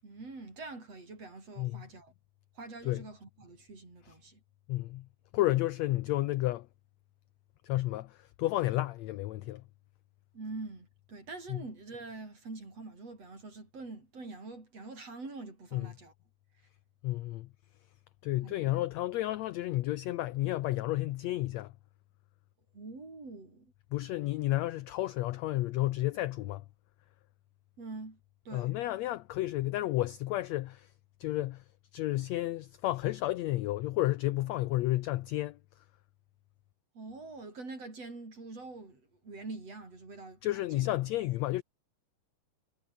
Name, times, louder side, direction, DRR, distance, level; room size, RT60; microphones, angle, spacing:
voice 1, 0.0-2.1 2.5-4.4 10.3-16.1 18.4-18.6 22.7-23.7 27.8-28.2 28.4-28.7 36.9-40.9, right 3 dB, 50° right, 8.2 m, -45 dB
voice 2, 4.7-5.1 5.3-6.7 7.6-9.6 11.5-11.6 15.7-15.9 17.0-17.5 18.2-21.7 23.9-26.6 28.5-30.9 31.2-31.6 31.9-35.6 40.4-41.6, left 16 dB, 75° left, 1.6 m, -31 dB
omnidirectional pair, 3.7 m